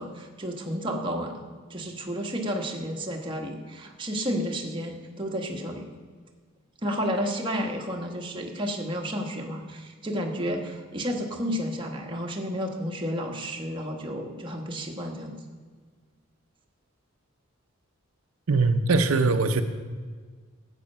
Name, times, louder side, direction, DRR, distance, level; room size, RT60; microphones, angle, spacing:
voice 1, 0.0-5.9 6.8-15.4, equal, 25° right, 1 dB, 1.2 m, -31 dB
voice 2, 18.5-19.6, right 3 dB, 85° right, 8 dB, 0.7 m, -21 dB
12.0 x 8.3 x 5.5 m, 1.5 s
head